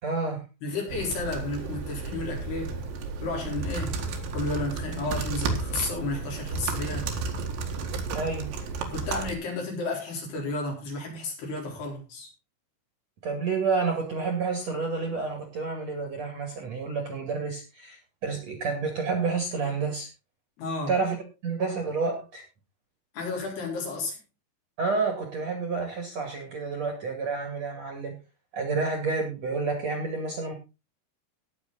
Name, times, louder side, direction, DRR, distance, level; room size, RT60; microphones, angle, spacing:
voice 1, 0.0-0.4 8.1-8.5 13.2-20.1 20.9-21.2 21.4-22.4 24.8-28.2 28.5-30.5, right 4 dB, 45° right, 4 dB, 2.7 m, -29 dB
voice 2, 0.6-2.8 3.2-4.0 4.3-7.1 8.9-12.3 20.6-21.0 23.1-24.2, left 2 dB, 60° left, 0 dB, 5.9 m, -32 dB
sound 1, 0.9-9.3, right 4 dB, 75° right, 4.1 m, -32 dB
18.0 x 7.0 x 4.0 m, 0.29 s
omnidirectional pair, 5.3 m